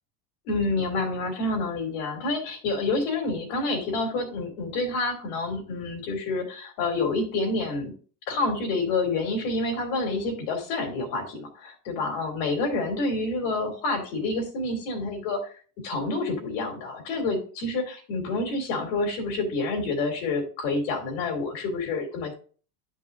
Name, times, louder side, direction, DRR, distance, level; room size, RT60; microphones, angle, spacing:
voice 1, 0.4-7.9 8.3-15.6 15.8-22.3, left 3 dB, 65° left, 3 dB, 3.3 m, -28 dB
12.0 x 5.5 x 2.7 m, 0.39 s
cardioid pair, 180°, 47 cm